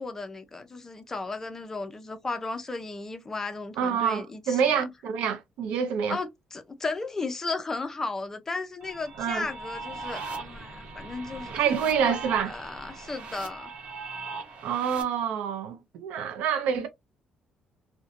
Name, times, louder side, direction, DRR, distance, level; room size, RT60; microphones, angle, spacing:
voice 1, 0.0-4.8 6.1-11.7 12.0-12.2 12.4-13.7, left 3 dB, 20° left, 0.5 m, -35 dB
voice 2, 3.8-6.2 9.2-9.5 11.5-12.5 14.6-16.9, right 7 dB, 90° right, 0.5 m, -27 dB
sound 1, 8.8-15.0, right 3 dB, 65° right, 0.9 m, -39 dB
2.6 x 2.1 x 2.5 m
cardioid pair, 130°, 2 cm